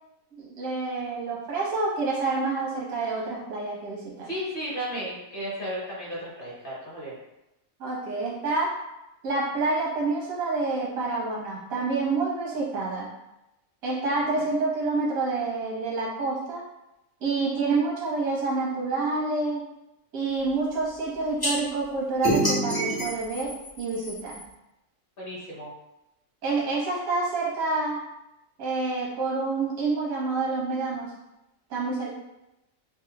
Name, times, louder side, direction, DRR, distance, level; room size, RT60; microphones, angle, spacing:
voice 1, 0.4-4.3 7.8-8.7 9.2-13.1 13.8-16.6 17.2-19.6 20.1-24.4 26.4-28.0 28.6-31.1 31.7-32.1, right 3 dB, 90° right, -5 dB, 1.4 m, -28 dB
voice 2, 4.2-7.2 25.2-25.7, equal, 45° left, -7 dB, 1.1 m, -34 dB
sound 1, 21.4-21.5 22.2-24.4, equal, 25° left, 0.5 m, -27 dB
4.3 x 2.1 x 2.2 m, 0.91 s
omnidirectional pair, 1.4 m